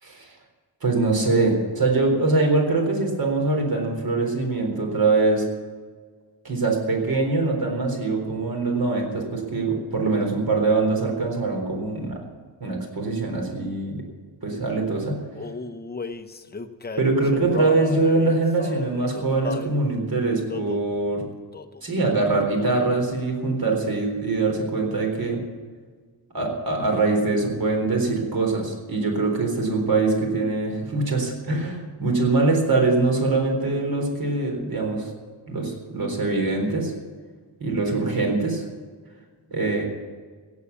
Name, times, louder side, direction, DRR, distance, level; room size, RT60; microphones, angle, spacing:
voice 1, 0.0-0.3 0.8-5.4 6.4-12.2 12.6-14.0 14.4-15.2 17.0-21.3 21.8-25.4 26.3-35.1 35.5-36.9 37.6-38.6 39.5-39.8, right 3 dB, 50° right, 2 dB, 4.1 m, -23 dB
Male singing, 15.3-19.8 20.5-20.9 21.5-21.8 22.1-23.0, left 3 dB, 20° left, 0.8 m, -35 dB
17.0 x 8.4 x 8.4 m, 1.5 s
wide cardioid pair, 130°, 45 cm